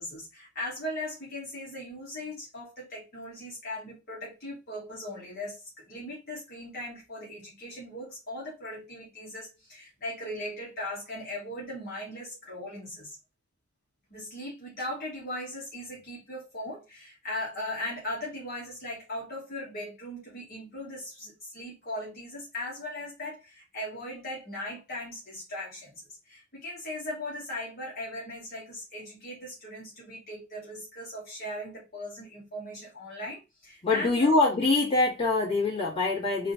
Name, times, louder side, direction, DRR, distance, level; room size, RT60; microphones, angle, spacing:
voice 1, 0.0-13.1 14.1-34.3, left 1 dB, 45° left, 1.4 m, -38 dB
voice 2, 33.8-36.5, left 3 dB, 25° left, 1.9 m, -24 dB
3.7 x 2.5 x 4.0 m
head